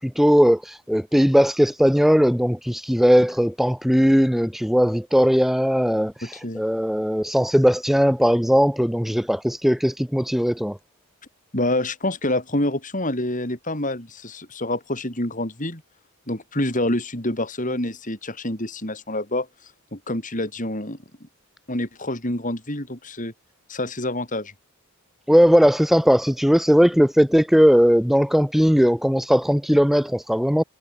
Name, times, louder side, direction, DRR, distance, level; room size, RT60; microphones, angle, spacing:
voice 1, 0.0-10.8 25.3-30.6, equal, ahead, 0.7 m, -18 dB
voice 2, 6.2-6.6 11.5-15.8 16.3-19.5 19.9-21.3 21.7-23.3 23.7-24.5, left 1 dB, 35° left, 5.5 m, -27 dB
head